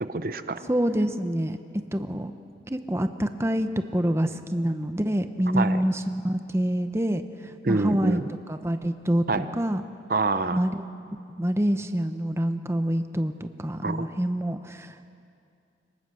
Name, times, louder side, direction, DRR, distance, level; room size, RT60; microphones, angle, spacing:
voice 1, 0.0-0.7 5.5-5.8 7.6-8.2 9.3-9.5 10.1-10.6 13.8-14.1, right 3 dB, 55° right, 11 dB, 0.7 m, -26 dB
voice 2, 0.7-1.6 1.9-2.3 2.7-8.2 8.5-9.3 9.5-9.8 10.5-10.8 11.4-15.1, equal, 15° right, 8 dB, 0.8 m, -26 dB
26.0 x 19.5 x 7.6 m, 2.5 s
head